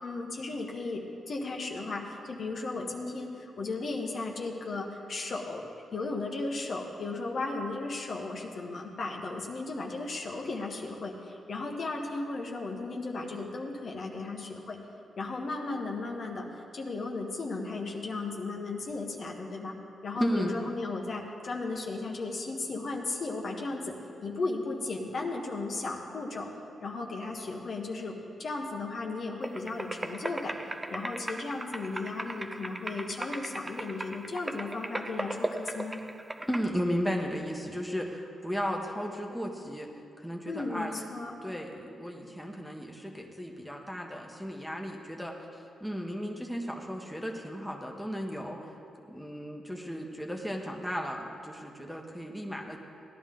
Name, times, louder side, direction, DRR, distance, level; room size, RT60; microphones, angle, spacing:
voice 1, 0.0-5.6 5.9-14.8 15.2-19.8 20.0-23.9 24.2-36.0 40.5-41.3, left 3 dB, 55° left, 1 dB, 1.5 m, -35 dB
voice 2, 20.1-20.6 36.4-39.9 40.2-41.1 41.4-48.7 49.1-52.8, equal, ahead, 0 dB, 1.3 m, -35 dB
sound 1, 29.4-36.6, right 1 dB, 15° right, 0.7 m, -37 dB
17.0 x 11.0 x 3.8 m, 2.6 s
cardioid pair, 80°, 0 cm